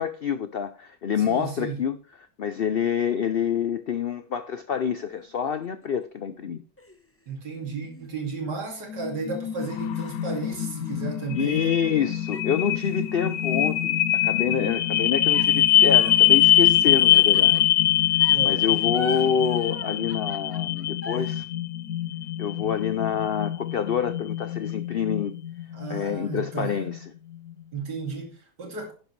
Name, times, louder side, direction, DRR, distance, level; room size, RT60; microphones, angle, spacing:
voice 1, 0.0-2.0 2.4-6.6 11.3-17.6 18.4-21.4 22.4-25.3 25.9-27.0, left 7 dB, 85° left, 0.5 m, -27 dB
voice 2, 1.2-1.8 7.3-11.7 18.3-18.6 25.7-26.7 27.7-28.9, right 4 dB, 80° right, 3.1 m, -34 dB
sound 1, 4.7-6.1 6.8-9.0 9.4-9.5 9.9-12.0 12.3-14.3 15.3-17.8 18.2-21.3, left 1 dB, 10° left, 0.6 m, -44 dB
sound 2, 8.9-27.0, left 12 dB, 70° left, 1.1 m, -23 dB
10.5 x 10.5 x 3.2 m
omnidirectional pair, 1.8 m